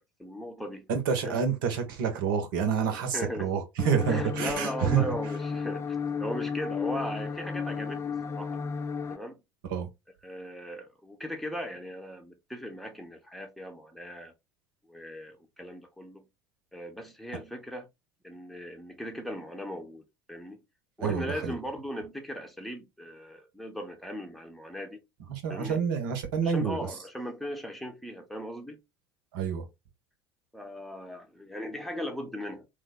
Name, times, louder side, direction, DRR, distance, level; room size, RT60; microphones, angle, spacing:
voice 1, 0.0-0.9 1.2-1.4 3.1-3.5 4.1-5.9 6.2-8.6 9.1-9.4 10.2-14.3 14.9-16.3 16.7-17.9 18.2-20.6 21.0-25.0 25.5-25.8 26.4-28.8 30.5-32.7, equal, ahead, 0.8 m, -38 dB
voice 2, 0.9-5.0 9.7-9.9 21.0-21.5 25.3-26.8 29.3-29.6, right 7 dB, 65° right, 0.9 m, -28 dB
sound 1, 3.8-9.2, left 6 dB, 20° left, 0.5 m, -33 dB
3.1 x 2.1 x 3.6 m
figure-of-eight pair, 70°, 12 cm